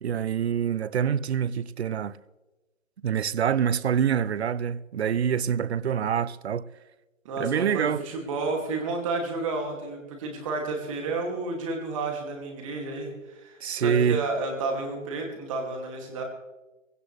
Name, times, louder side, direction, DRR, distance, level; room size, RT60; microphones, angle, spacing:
voice 1, 0.0-2.2 3.0-6.7 7.4-8.0 13.6-14.2, right 8 dB, 55° right, 0.6 m, -26 dB
voice 2, 7.2-16.2, right 3 dB, 25° right, 2.6 m, -31 dB
19.0 x 17.0 x 3.4 m
hypercardioid pair, 165°, 38 cm